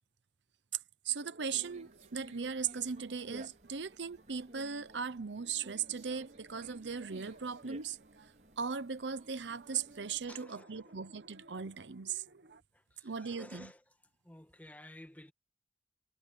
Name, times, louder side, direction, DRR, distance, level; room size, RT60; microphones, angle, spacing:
voice 1, 1.0-8.0 8.6-12.2 13.0-13.7, right 6 dB, 80° right, 0.8 m, -38 dB
sound 1, 1.2-12.6, right 2 dB, 60° right, 1.4 m, -60 dB
Conversation, 1.5-10.3, right 1 dB, 45° right, 4.9 m, -56 dB
voice 2, 10.3-10.9 12.7-13.8 14.2-15.3, left 1 dB, 10° left, 2.1 m, -53 dB
head